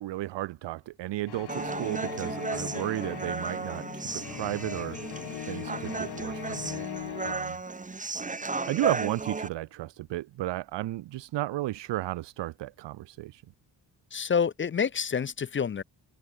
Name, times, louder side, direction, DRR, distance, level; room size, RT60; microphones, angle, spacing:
voice 1, 0.0-5.0 5.5-6.8 7.2-7.6 8.6-13.4, right 16 dB, 80° right, 0.7 m, -33 dB
sound 1, 1.3-7.3, left 11 dB, 65° left, 1.1 m, -40 dB
Human voice, 1.5-9.5, right 3 dB, 20° right, 1.3 m, -35 dB
voice 2, 14.1-15.8, left 6 dB, 30° left, 0.5 m, -28 dB
cardioid pair, 85°, 43 cm